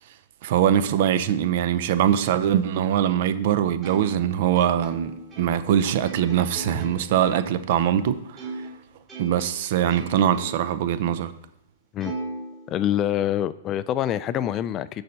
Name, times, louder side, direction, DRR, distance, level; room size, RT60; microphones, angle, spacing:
voice 1, 0.4-5.1 5.4-8.6 9.2-11.3, right 10 dB, 50° right, 0.7 m, -22 dB
Plucked string instrument, 3.8-8.8 9.1-10.8 11.2-11.3 12.0-13.2, right 3 dB, 20° right, 2.5 m, -38 dB
voice 2, 12.7-15.0, left 11 dB, 30° left, 0.3 m, -25 dB
6.6 x 4.3 x 6.5 m
figure-of-eight pair, 110°, 0 cm